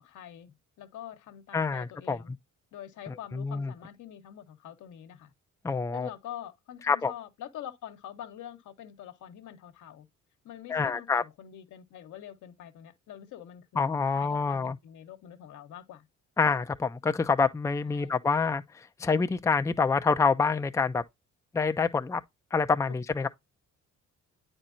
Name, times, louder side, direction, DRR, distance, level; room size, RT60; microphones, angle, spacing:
voice 1, 0.0-2.3 2.7-5.3 5.9-10.1 10.4-16.1 17.8-18.2 22.9-23.0, left 10 dB, 80° left, 1.1 m, -45 dB
voice 2, 1.5-2.2 3.1-3.7 5.6-6.1 6.9-7.1 10.7-11.2 13.8-14.8 16.4-21.0 21.5-22.2 22.5-23.3, left 5 dB, 10° left, 0.4 m, -27 dB
9.1 x 4.3 x 2.6 m
cardioid pair, 90°, 30 cm